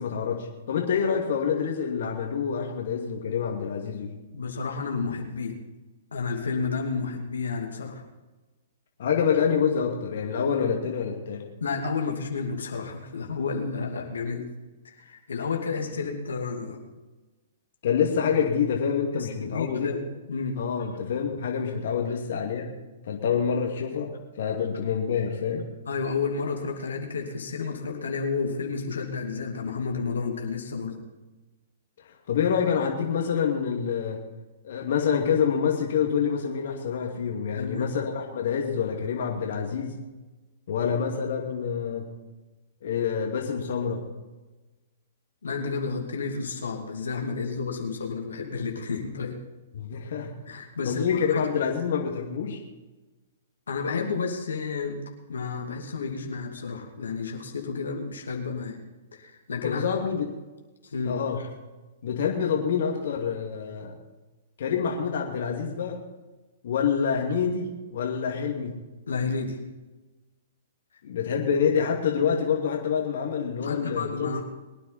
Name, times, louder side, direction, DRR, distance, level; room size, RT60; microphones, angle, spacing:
voice 1, 0.0-4.1 9.0-11.4 17.8-19.9 20.6-22.7 23.1-25.7 32.3-34.2 34.6-40.0 40.7-42.1 42.8-44.0 49.7-50.3 50.9-52.6 59.6-60.3 61.0-61.4 62.0-64.0 64.6-66.0 66.6-68.8 71.0-74.4, left 7 dB, 65° left, 1 dB, 2.4 m, -27 dB
voice 2, 4.3-5.6 6.1-8.0 11.6-14.4 14.8-16.8 19.1-20.0 20.3-20.6 25.9-31.0 37.6-37.9 45.4-49.3 50.5-51.5 53.7-55.0 55.3-58.8 59.1-59.8 60.8-61.2 69.1-69.6 73.6-74.4, left 4 dB, 85° left, 1 dB, 2.7 m, -31 dB
23.0 x 9.8 x 4.3 m, 1.2 s
hypercardioid pair, 130°, 0 cm